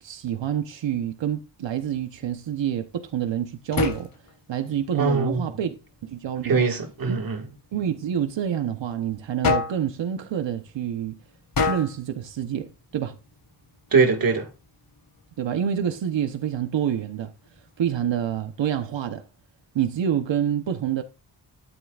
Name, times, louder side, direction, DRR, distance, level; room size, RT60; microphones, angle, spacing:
voice 1, 0.0-4.1 4.5-5.7 6.0-6.6 7.1-7.2 7.7-11.2 11.7-13.2 15.4-17.3 17.8-19.2 19.7-21.0, right 9 dB, 90° right, 1.1 m, -27 dB
sound 1, 1.7-18.6, left 4 dB, 50° left, 3.4 m, -35 dB
voice 2, 5.0-5.4 6.4-7.5 13.9-14.5, right 4 dB, 50° right, 2.0 m, -22 dB
12.5 x 10.5 x 2.5 m
wide cardioid pair, 175°, 43 cm